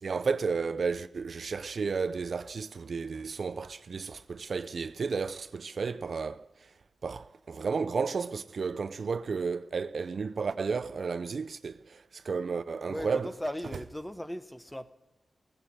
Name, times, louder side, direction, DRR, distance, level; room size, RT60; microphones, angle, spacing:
voice 1, 0.0-6.5 7.0-13.3, right 5 dB, 55° right, 0.5 m, -32 dB
voice 2, 12.9-14.9, equal, 10° left, 0.8 m, -37 dB
16.5 x 8.9 x 9.6 m
wide cardioid pair, 110°, 0 cm